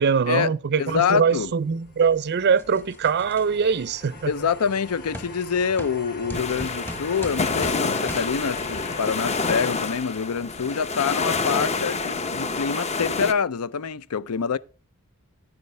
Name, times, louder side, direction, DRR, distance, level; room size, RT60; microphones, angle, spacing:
voice 1, 0.0-4.3, right 6 dB, 50° right, 0.5 m, -22 dB
voice 2, 0.8-1.5 4.3-14.6, left 6 dB, 80° left, 0.5 m, -26 dB
sound 1, 1.1-9.7, left 3 dB, 45° left, 2.4 m, -41 dB
sound 2, 2.6-3.4 4.1-4.3 5.1-5.3 5.8-6.0 6.3-7.8 8.1-8.3, equal, 10° left, 1.0 m, -37 dB
sound 3, 6.3-13.3, left 4 dB, 30° left, 0.7 m, -27 dB
9.5 x 9.2 x 3.3 m
head